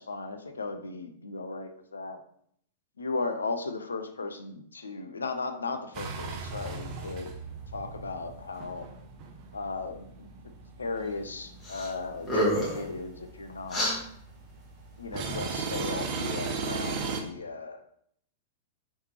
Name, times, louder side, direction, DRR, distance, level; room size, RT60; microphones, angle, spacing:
voice 1, 0.0-2.2 3.0-7.4 7.7-8.9 9.5-10.5 10.8-13.8 15.0-17.8, left 3 dB, 75° left, 7 dB, 0.4 m, -36 dB
sound 1, 5.9-17.2, right 4 dB, 35° right, 0.5 m, -38 dB
sound 2, 11.6-11.9 12.2-12.8 13.7-14.0, equal, 20° left, 1.3 m, -27 dB
3.2 x 3.1 x 2.9 m, 0.67 s
figure-of-eight pair, 100°, 0 cm